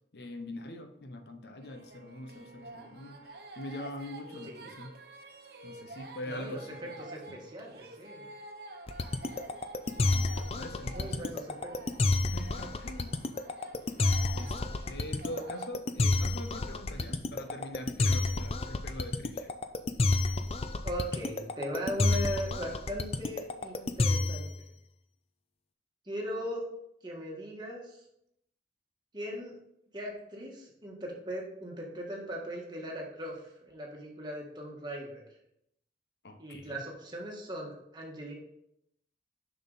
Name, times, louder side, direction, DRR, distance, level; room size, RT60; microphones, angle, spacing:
voice 1, 0.1-3.2 3.6-5.0 5.6-6.9 7.3-7.4 10.0-11.3 12.3-13.2 14.3-19.5 36.2-36.8, left 1 dB, 70° left, 7 dB, 0.8 m, -43 dB
sound 1, 1.6-15.7, right 2 dB, 60° right, 0.9 m, -49 dB
voice 2, 6.2-6.6 7.1-8.3 10.9-11.7 20.8-24.5 26.1-26.6 27.0-28.0 29.1-29.5 29.9-35.2 36.4-38.3, equal, 25° right, -2 dB, 1.7 m, -39 dB
sound 2, 8.9-24.5, left 2 dB, 35° left, 0.4 m, -29 dB
6.9 x 6.2 x 4.0 m, 0.78 s
head